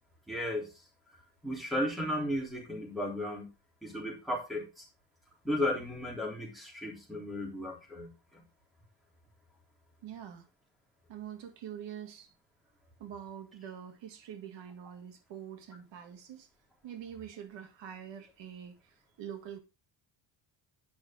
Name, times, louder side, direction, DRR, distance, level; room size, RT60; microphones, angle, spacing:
voice 1, 0.3-0.8 1.4-3.5 3.8-4.9 5.4-8.4, left 1 dB, ahead, 3.3 m, -35 dB
voice 2, 10.0-10.5 11.1-12.3 13.0-16.5 16.8-19.6, right 9 dB, 75° right, 1.8 m, -45 dB
9.7 x 6.2 x 3.7 m
cardioid pair, 140°, 45 cm